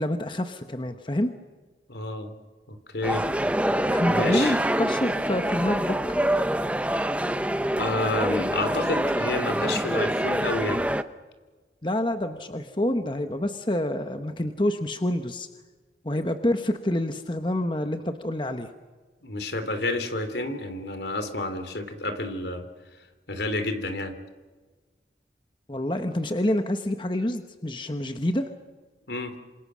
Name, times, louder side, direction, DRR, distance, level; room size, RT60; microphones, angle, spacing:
voice 1, 0.0-1.3 3.6-6.2 11.8-15.5 16.0-18.7 25.7-28.5, left 1 dB, 25° left, 7 dB, 1.1 m, -27 dB
voice 2, 1.9-2.3 2.7-3.2 4.1-4.5 7.8-10.8 19.2-22.6 23.3-24.2 29.1-29.3, left 2 dB, 75° left, 8 dB, 3.1 m, -30 dB
sound 1, 3.0-11.0, right 1 dB, 5° right, 0.7 m, -25 dB
27.5 x 27.0 x 6.3 m, 1.4 s
head